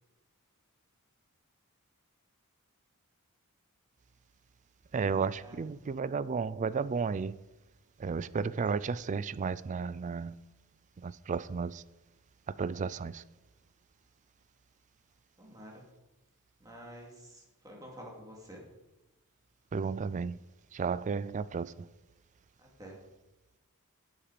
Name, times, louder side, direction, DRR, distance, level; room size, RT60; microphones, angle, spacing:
voice 1, 4.9-7.4 8.0-10.4 11.0-11.8 12.6-13.2 19.7-20.4 20.7-21.9, right 5 dB, 35° right, 0.3 m, -33 dB
voice 2, 15.4-15.9 16.6-18.6 22.6-23.0, equal, 15° right, 2.8 m, -49 dB
11.5 x 8.7 x 5.1 m
head